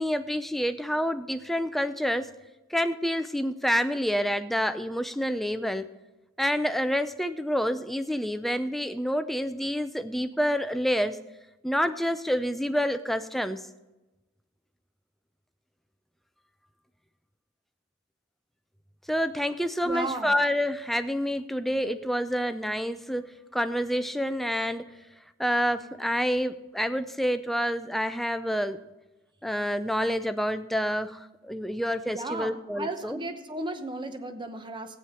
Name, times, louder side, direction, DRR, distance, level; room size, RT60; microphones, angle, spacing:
voice 1, 0.0-2.3 2.7-5.9 6.4-11.2 11.6-13.7 19.1-24.9 25.4-28.8 29.4-33.2, equal, ahead, 10 dB, 0.4 m, -28 dB
voice 2, 19.8-20.4 32.1-35.0, right 2 dB, 20° right, 7 dB, 0.9 m, -35 dB
15.0 x 9.1 x 5.7 m, 1.1 s
head